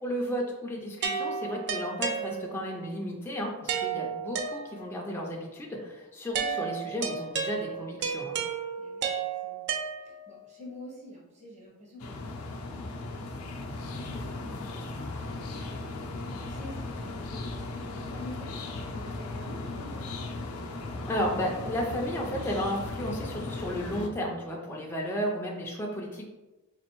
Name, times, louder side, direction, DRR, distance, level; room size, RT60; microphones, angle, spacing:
voice 1, 0.0-8.4 21.1-26.2, equal, 10° left, -2 dB, 0.4 m, -33 dB
sound 1, 1.0-2.8 3.7-5.1 6.3-10.5, right 6 dB, 50° right, 0.4 m, -33 dB
voice 2, 8.8-9.7 9.9-15.5 15.7-20.3, left 1 dB, 30° right, -3 dB, 0.9 m, -48 dB
sound 2, 12.0-24.1, left 2 dB, 70° left, 0.5 m, -37 dB
4.1 x 2.5 x 3.0 m, 1.1 s
head